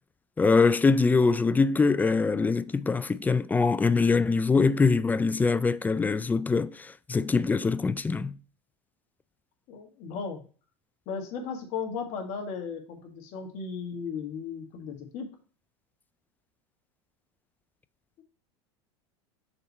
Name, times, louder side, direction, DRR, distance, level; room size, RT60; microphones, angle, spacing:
voice 1, 0.4-8.4, left 4 dB, 10° left, 0.3 m, -23 dB
voice 2, 9.7-10.4 11.1-15.3, left 5 dB, 55° left, 1.8 m, -36 dB
6.6 x 4.3 x 4.3 m
hypercardioid pair, 105°, 15 cm